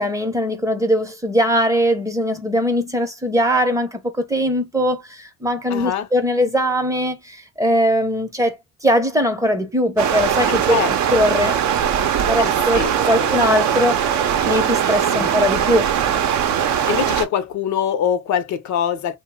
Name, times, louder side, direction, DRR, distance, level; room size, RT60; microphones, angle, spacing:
voice 1, 0.0-10.8 11.1-11.5 12.3-14.2 14.4-15.9, equal, 10° right, 0.6 m, -20 dB
voice 2, 5.7-6.1 10.5-11.2 12.4-13.3 15.1-15.3 16.9-19.2, left 9 dB, 55° left, 0.6 m, -24 dB
Stream, 10.0-17.2, right 8 dB, 55° right, 0.6 m, -20 dB
2.8 x 2.0 x 3.4 m
cardioid pair, 100°, 34 cm